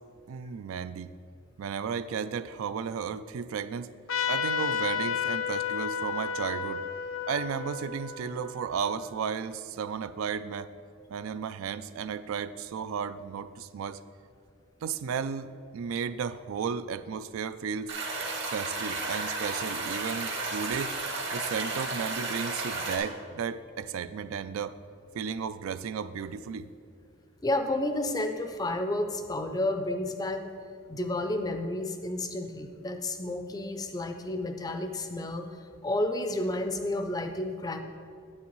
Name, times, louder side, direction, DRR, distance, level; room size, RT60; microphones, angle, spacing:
voice 1, 0.3-1.1 1.6-3.9 4.3-6.8 7.3-10.7 11.1-14.0 14.8-17.9 18.5-20.9 21.3-24.8 25.1-26.7, right 6 dB, 85° right, 13 dB, 0.3 m, -34 dB
Trumpet, 4.1-9.2, left 6 dB, 75° left, 0.5 m, -32 dB
sound 1, 17.9-23.0, right 3 dB, 60° right, 1.2 m, -33 dB
voice 2, 27.4-30.4 30.9-35.5 35.8-37.8, left 1 dB, 20° left, 7 dB, 0.4 m, -31 dB
9.6 x 8.5 x 3.1 m, 2.3 s
head